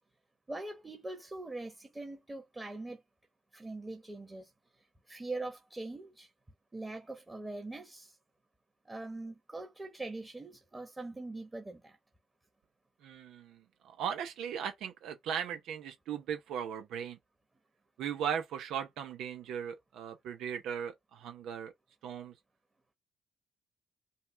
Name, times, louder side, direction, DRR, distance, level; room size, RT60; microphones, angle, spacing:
voice 1, 0.5-3.0 3.5-4.5 5.1-6.3 6.7-8.2 8.8-12.0, right 2 dB, 20° right, 1.3 m, -42 dB
voice 2, 13.0-13.6 13.8-17.2 18.0-21.7 22.0-22.3, right 8 dB, 80° right, 0.7 m, -38 dB
5.6 x 2.3 x 3.3 m
cardioid pair, 90°, 0 cm